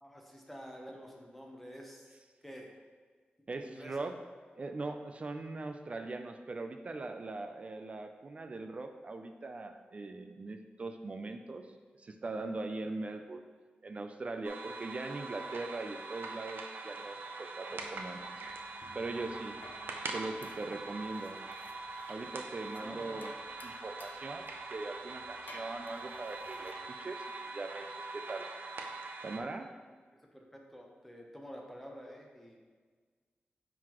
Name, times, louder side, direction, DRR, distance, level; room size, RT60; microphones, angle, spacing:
voice 1, 0.0-2.1 2.4-2.7 3.6-4.1 22.8-23.3 30.3-32.6, equal, 5° left, 0 dB, 0.8 m, -48 dB
voice 2, 3.5-4.1 4.6-11.7 12.0-13.4 13.8-18.2 18.9-19.6 20.1-21.4 22.1-23.3 23.6-27.2 27.5-28.4 29.2-29.7, right 3 dB, 35° right, 7 dB, 0.3 m, -40 dB
sound 1, 14.4-29.4, right 3 dB, 85° right, 0.6 m, -43 dB
sound 2, 17.7-26.9, left 3 dB, 60° left, 0.5 m, -57 dB
9.4 x 3.9 x 3.0 m, 1.5 s
wide cardioid pair, 155°, 3 cm